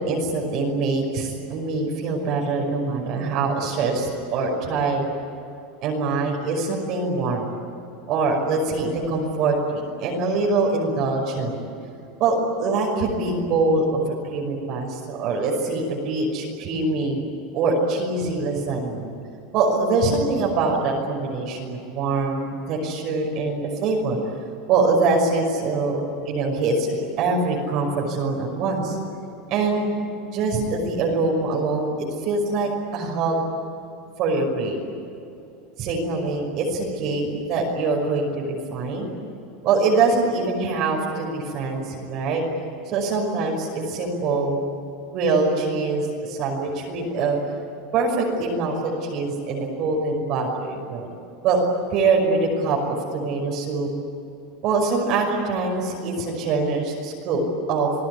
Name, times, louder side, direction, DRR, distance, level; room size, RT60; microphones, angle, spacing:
voice 1, 0.0-5.0 5.8-7.5 8.1-11.6 12.2-14.0 14.3-17.2 17.5-19.1 19.5-24.2 24.7-29.0 29.5-30.0 30.3-31.9 32.2-33.4 34.2-34.8 35.8-39.1 39.6-42.4 42.9-44.6 45.1-47.4 47.9-51.1 51.4-51.6 51.9-52.8 53.1-53.9 54.6-57.4 57.7-57.9, right 3 dB, 40° right, -1 dB, 5.7 m, -24 dB
29.5 x 20.0 x 9.6 m, 2.7 s
supercardioid pair, 165°, 0 cm